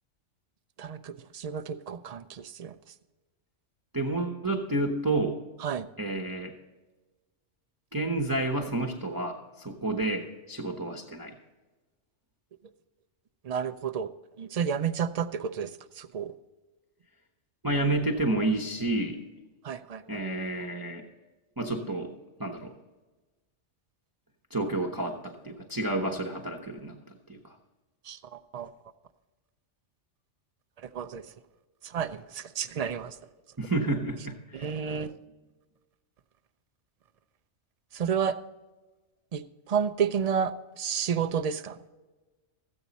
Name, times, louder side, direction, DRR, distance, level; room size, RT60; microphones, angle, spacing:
voice 1, 0.8-2.8 5.6-5.9 13.4-14.1 14.4-16.3 19.6-20.2 28.0-28.7 30.8-31.3 31.8-33.2 34.5-35.1 37.9-38.4 39.3-41.8, right 7 dB, 55° right, 9 dB, 0.4 m, -31 dB
voice 2, 3.9-5.4 6.0-6.5 7.9-11.3 17.6-19.2 20.1-21.1 21.6-22.1 22.4-22.7 24.5-27.0 27.3-27.4 33.6-34.7, right 2 dB, 20° right, 0 dB, 0.8 m, -30 dB
14.0 x 8.7 x 4.1 m, 1.2 s
omnidirectional pair, 1.2 m